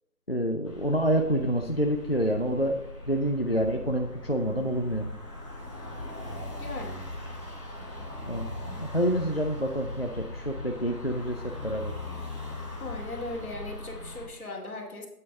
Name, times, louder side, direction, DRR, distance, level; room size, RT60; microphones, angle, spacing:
voice 1, 0.3-2.8 3.1-5.1 8.3-8.5 8.8-11.9, equal, 40° left, 4 dB, 0.4 m, -27 dB
sound 1, 0.6-14.3, left 2 dB, 20° right, 0.9 m, -40 dB
voice 2, 6.6-7.0 12.8-15.1, left 2 dB, 65° left, 0 dB, 2.3 m, -38 dB
8.6 x 8.4 x 3.3 m, 0.87 s
hypercardioid pair, 175°, 47 cm